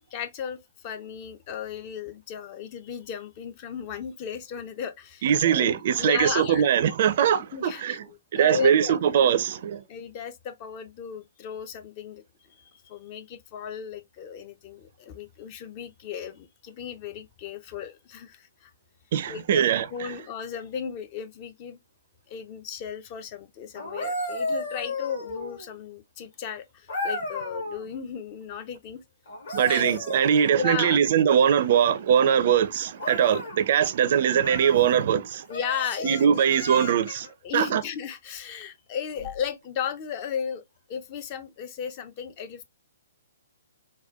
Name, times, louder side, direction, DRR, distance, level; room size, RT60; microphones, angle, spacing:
voice 1, 0.1-5.7 6.0-6.7 7.5-8.0 8.3-9.0 9.9-12.2 12.5-18.7 19.3-19.6 19.9-21.8 22.3-29.0 29.7-30.1 30.5-31.0 35.5-36.4 37.4-40.6 40.9-42.6, left 7 dB, 30° left, 0.5 m, -35 dB
voice 2, 5.2-8.0 8.3-9.8 19.1-20.1 29.5-35.5 36.0-37.3 37.5-37.8, right 8 dB, 45° right, 0.4 m, -22 dB
sound 1, 23.7-25.7 26.9-27.9 29.3-30.9 33.0-33.6 34.4-34.8 35.5-37.3 39.2-39.4, left 2 dB, 55° left, 1.5 m, -34 dB
4.1 x 2.2 x 2.3 m
figure-of-eight pair, 125°, 0 cm